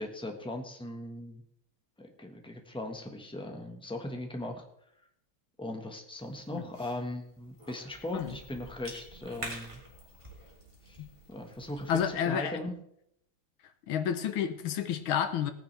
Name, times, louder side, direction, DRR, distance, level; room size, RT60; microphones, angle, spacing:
voice 1, 0.0-1.4 2.0-4.6 5.6-9.8 10.9-11.0 11.3-12.7, left 1 dB, 5° left, 3 dB, 1.0 m, -39 dB
Cough / Chewing mastication, 6.2-12.1, right 1 dB, 15° right, 3.0 m, -48 dB
voice 2, 11.9-12.6 13.9-15.5, left 8 dB, 80° left, 10 dB, 1.7 m, -30 dB
18.5 x 9.7 x 3.4 m, 0.73 s
omnidirectional pair, 2.3 m